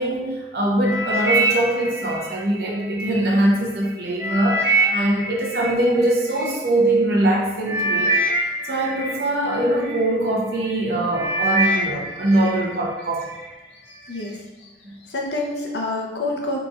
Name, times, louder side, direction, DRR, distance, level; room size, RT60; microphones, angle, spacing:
voice 1, 0.0-8.2 8.7-13.2, right 1 dB, 65° right, -3 dB, 0.8 m, -22 dB
sound 1, 0.8-3.2 3.7-6.5 7.2-7.4 7.7-10.0 10.6-10.8 11.1-12.7 13.0-13.5 14.1-14.2, right 2 dB, 15° right, 0.5 m, -24 dB
voice 2, 13.9-14.7 15.1-16.6, left 2 dB, 80° left, -1 dB, 0.7 m, -28 dB
4.0 x 3.2 x 2.4 m, 1.0 s
head